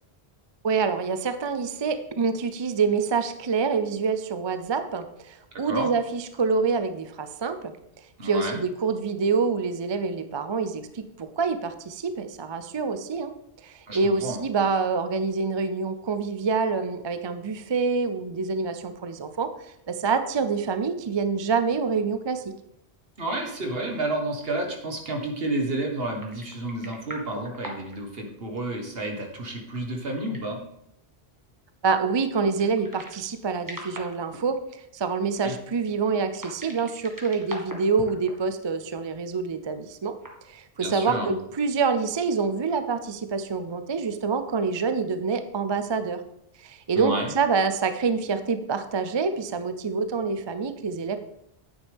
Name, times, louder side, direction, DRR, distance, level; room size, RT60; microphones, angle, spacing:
voice 1, 0.6-7.7 8.2-13.3 13.6-19.5 19.9-22.5 31.8-34.6 34.9-40.1 40.5-46.2 46.6-51.2, right 5 dB, 35° right, 10 dB, 0.4 m, -26 dB
voice 2, 8.2-8.6 13.9-14.4 23.2-30.6 35.4-35.5 40.8-41.3 46.9-47.3, right 2 dB, 65° right, 2 dB, 1.7 m, -30 dB
sound 1, 26.2-28.0 28.3-28.4 29.5-30.6 32.5-33.4 33.6-34.4 36.3-38.3 38.6-38.7 40.1-40.4, right 1 dB, 20° right, 1.6 m, -41 dB
9.7 x 8.2 x 3.5 m, 0.78 s
omnidirectional pair, 1.1 m